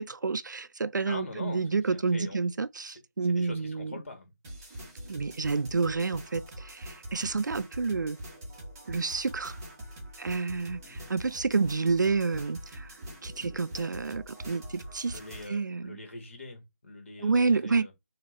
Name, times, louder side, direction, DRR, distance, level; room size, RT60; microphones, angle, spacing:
voice 1, 0.0-3.9 5.1-8.2 8.9-9.6 10.2-12.9 13.2-15.2 15.5-16.0 17.2-17.9, right 4 dB, 85° right, 0.4 m, -29 dB
voice 2, 1.0-2.4 2.9-4.3 10.9-11.1 15.1-17.9, left 2 dB, 45° left, 2.2 m, -43 dB
sound 1, 4.4-15.5, right 1 dB, 10° right, 0.9 m, -44 dB
4.4 x 2.8 x 4.1 m
figure-of-eight pair, 175°, 10 cm